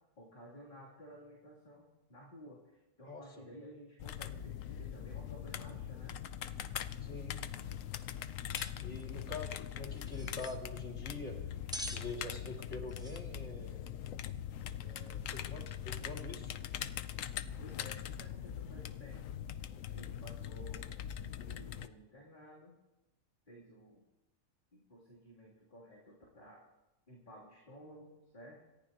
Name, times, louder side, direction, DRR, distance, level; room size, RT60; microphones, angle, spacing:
voice 1, 0.2-6.2 17.6-19.2 19.8-20.9 21.2-22.8 23.5-24.0 24.7-26.7 27.1-28.6, equal, 35° left, -7 dB, 3.1 m, -54 dB
voice 2, 3.1-3.5 7.0-7.4 8.8-11.4 11.9-13.9 14.7-16.6, left 2 dB, 55° left, 0 dB, 2.7 m, -45 dB
sound 1, 4.0-21.9, left 10 dB, 70° left, 1.0 m, -42 dB
sound 2, 8.6-8.7 9.0-9.1 10.0-10.6 11.7-12.1 12.9-13.2, equal, 5° right, 0.8 m, -44 dB
27.0 x 14.5 x 2.9 m, 1.0 s
omnidirectional pair, 1.4 m